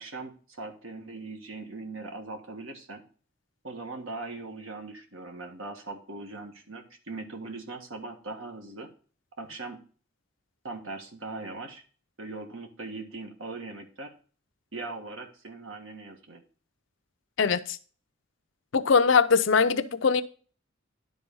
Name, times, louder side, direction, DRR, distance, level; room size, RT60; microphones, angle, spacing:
voice 1, 0.0-3.0 3.6-8.9 9.4-9.8 10.6-11.8 12.2-14.1 14.7-16.4, right 3 dB, 80° right, 1.6 m, -40 dB
voice 2, 17.4-17.8 18.7-20.2, left 5 dB, 70° left, 0.6 m, -22 dB
11.0 x 3.9 x 5.3 m
head